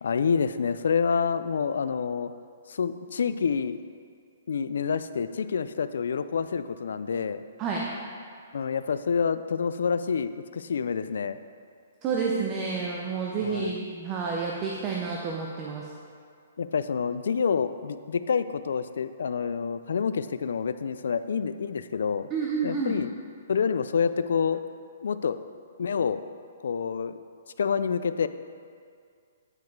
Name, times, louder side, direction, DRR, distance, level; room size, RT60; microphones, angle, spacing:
voice 1, 0.0-2.3 2.7-3.8 4.5-7.4 8.5-11.4 13.4-13.7 16.6-22.3 22.6-23.1 23.5-24.6 25.0-25.4 25.8-26.2 26.6-27.2 27.6-28.3, left 6 dB, 70° left, 12 dB, 0.3 m, -27 dB
voice 2, 12.0-15.9 22.3-23.0, right 5 dB, 15° right, -2 dB, 0.5 m, -29 dB
9.4 x 4.9 x 4.6 m, 2.2 s
hypercardioid pair, 175°, 0 cm